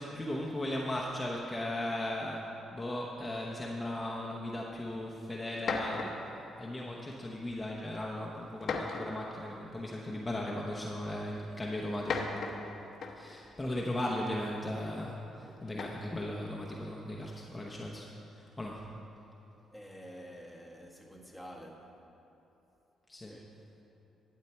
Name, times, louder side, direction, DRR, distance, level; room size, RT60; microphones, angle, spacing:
voice 1, 0.0-12.3 13.1-18.1 18.3-18.9 23.1-23.4, left 1 dB, 15° left, -3 dB, 1.0 m, -37 dB
sound 1, 4.9-5.0 5.5-6.3 7.2-7.5 8.6-9.3 10.4-10.5 11.8-13.4 15.7-16.2, left 4 dB, 60° left, 0.9 m, -37 dB
voice 2, 15.4-15.7 19.7-21.9 23.3-23.5, equal, 5° right, -1 dB, 1.5 m, -49 dB
12.0 x 8.2 x 4.5 m, 3.0 s
cardioid pair, 90°, 0 cm